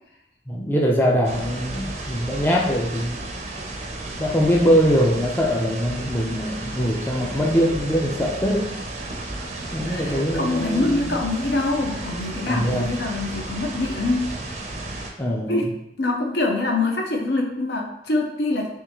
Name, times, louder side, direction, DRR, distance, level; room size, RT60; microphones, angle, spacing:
voice 1, 0.5-3.2 4.2-8.7 9.7-11.1 12.5-12.9 15.2-15.6, equal, 10° left, -2 dB, 0.4 m, -22 dB
sound 1, 1.2-15.1, right 2 dB, 40° right, 0.6 m, -33 dB
voice 2, 9.8-14.3 15.5-15.7 16.0-18.7, left 2 dB, 70° left, 2 dB, 0.6 m, -24 dB
3.6 x 3.1 x 3.0 m, 0.77 s
head